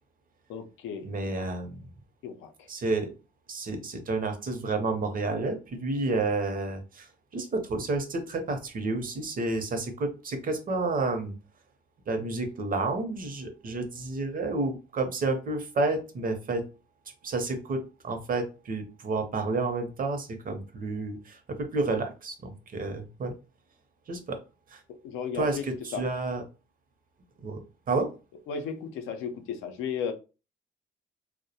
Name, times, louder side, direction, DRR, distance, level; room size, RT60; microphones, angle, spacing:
voice 1, 0.5-1.1 2.2-2.7 25.0-25.7 25.9-26.0 28.5-30.1, left 6 dB, 85° left, 0.4 m, -34 dB
voice 2, 1.0-1.9 2.7-3.1 3.5-11.3 12.1-16.6 17.2-23.3 24.1-24.4 24.7-24.8 25.3-26.4 27.4-27.6 27.9-28.1, right 3 dB, 45° right, 0.6 m, -30 dB
2.2 x 2.1 x 2.7 m
cardioid pair, 90°, 20 cm